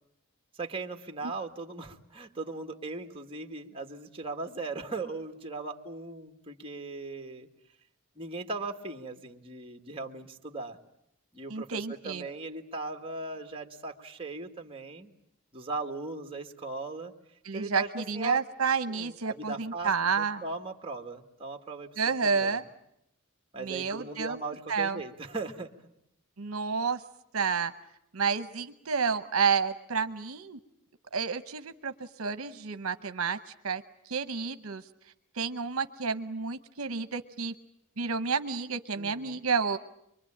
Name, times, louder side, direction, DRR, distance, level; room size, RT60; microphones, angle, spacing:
voice 1, 0.6-7.5 8.1-10.8 11.3-15.1 15.5-17.1 17.5-18.4 18.9-22.6 23.5-25.7 38.9-39.4, right 3 dB, 25° right, 5 dB, 1.6 m, -38 dB
voice 2, 11.5-12.2 17.4-20.4 22.0-22.6 23.6-24.4 24.7-25.0 26.4-27.0 27.3-27.7 28.1-30.6 31.1-33.8 34.1-34.8 35.4-37.5 38.0-39.8, right 5 dB, 70° right, 10 dB, 0.9 m, -30 dB
24.0 x 24.0 x 8.6 m, 0.77 s
head